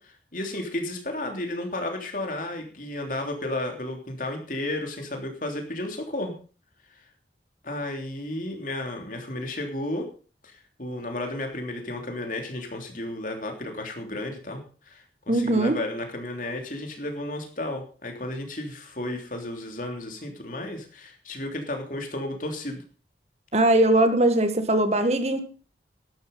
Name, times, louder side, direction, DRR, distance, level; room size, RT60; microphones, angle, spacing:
voice 1, 0.0-6.3 7.6-10.1 10.4-22.8, left 1 dB, 50° left, 3 dB, 3.2 m, -33 dB
voice 2, 15.3-15.8 23.5-25.4, right 1 dB, 35° right, 8 dB, 1.8 m, -20 dB
12.5 x 12.0 x 5.4 m, 0.39 s
head